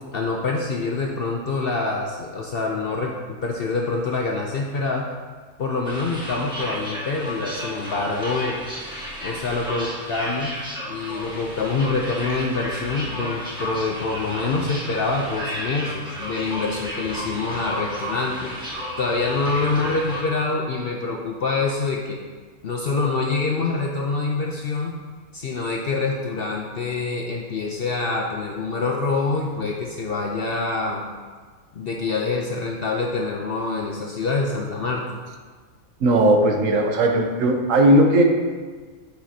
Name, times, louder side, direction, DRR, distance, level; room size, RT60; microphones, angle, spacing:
voice 1, 0.1-3.1 3.4-5.1 5.6-8.6 9.2-10.6 10.9-18.5 19.0-22.2 22.6-24.9 25.3-31.0 31.7-35.1, left 3 dB, 60° left, 0 dB, 0.6 m, -25 dB
sound 1, 5.8-20.2, equal, 5° right, 1.5 m, -33 dB
voice 2, 36.0-38.2, right 1 dB, 70° right, 3 dB, 1.1 m, -17 dB
8.9 x 5.8 x 2.8 m, 1.5 s
omnidirectional pair, 1.5 m